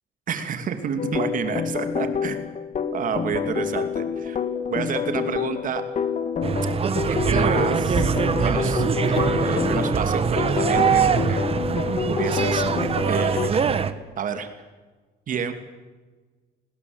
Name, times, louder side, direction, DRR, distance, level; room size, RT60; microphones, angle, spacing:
voice 1, 0.3-2.4 2.9-4.4 4.7-5.8 6.8-11.4 11.8-12.6 13.1-13.6 14.2-14.5 15.3-15.5, right 7 dB, 50° right, 8 dB, 2.8 m, -30 dB
sound 1, 1.0-13.5, left 6 dB, 45° left, 2.5 m, -27 dB
sound 2, 6.4-13.9, right 6 dB, 35° right, 1.8 m, -23 dB
28.5 x 20.5 x 8.1 m, 1.3 s
cardioid pair, 110°, 17 cm